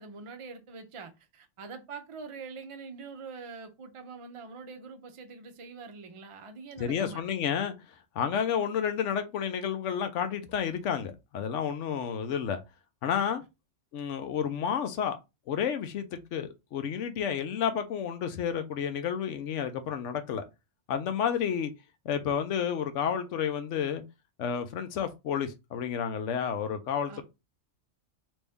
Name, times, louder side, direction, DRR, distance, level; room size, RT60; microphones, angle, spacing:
voice 1, 0.0-7.2 27.1-27.2, right 4 dB, 40° right, 0.4 m, -44 dB
voice 2, 6.8-7.7 8.1-12.6 13.0-13.4 13.9-15.2 15.5-20.4 20.9-21.7 22.0-24.0 24.4-27.2, left 8 dB, 75° left, 1.0 m, -30 dB
3.1 x 2.7 x 3.4 m
omnidirectional pair, 1.3 m